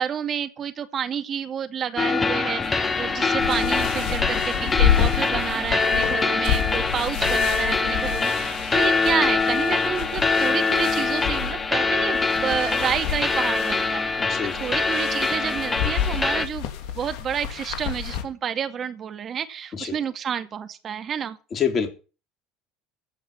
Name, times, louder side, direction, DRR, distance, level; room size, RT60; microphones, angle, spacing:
voice 1, 0.0-14.2 14.6-16.7 17.0-21.4, right 8 dB, 45° right, 2.2 m, -29 dB
sound 1, 2.0-16.5, left 4 dB, 25° left, 2.0 m, -24 dB
sound 2, 2.6-18.2, left 9 dB, 65° left, 2.7 m, -29 dB
voice 2, 14.2-14.7 19.7-20.0 21.5-21.9, left 7 dB, 40° left, 3.6 m, -27 dB
15.5 x 5.7 x 10.0 m
hypercardioid pair, 75°, 0 cm